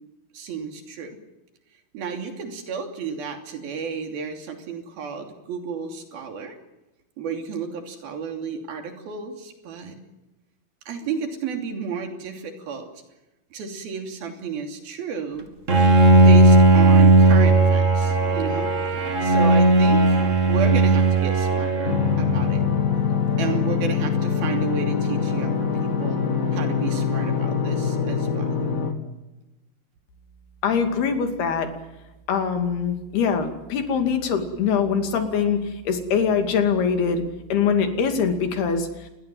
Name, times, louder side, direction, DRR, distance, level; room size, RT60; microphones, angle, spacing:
voice 1, 0.3-1.2 1.9-6.6 7.2-10.0 10.9-12.9 13.5-15.5 16.1-18.7 19.2-22.6 23.4-26.2 26.5-28.6, right 6 dB, 75° right, 5 dB, 4.8 m, -32 dB
Bowed string instrument, 15.7-22.8, right 3 dB, 45° right, 1.0 m, -16 dB
sound 1, 21.8-28.9, left 6 dB, 30° left, 1.8 m, -24 dB
voice 2, 30.6-31.7 32.3-35.6 35.9-37.2 37.5-38.9, left 6 dB, 90° left, 6 dB, 4.6 m, -23 dB
27.5 x 21.0 x 7.8 m, 0.98 s
omnidirectional pair, 4.4 m